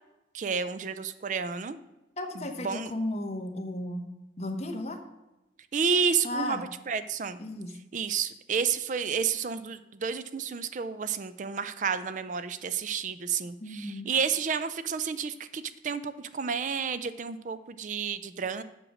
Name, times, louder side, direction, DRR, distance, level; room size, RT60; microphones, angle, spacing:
voice 1, 0.3-1.8 2.4-2.9 5.7-7.4 7.9-18.6, right 6 dB, 45° right, 13 dB, 0.4 m, -31 dB
voice 2, 2.2-4.1 4.4-5.0 6.2-6.6 7.4-7.7 13.6-14.1, left 1 dB, 35° left, 3 dB, 1.0 m, -34 dB
7.8 x 6.1 x 6.3 m, 0.98 s
head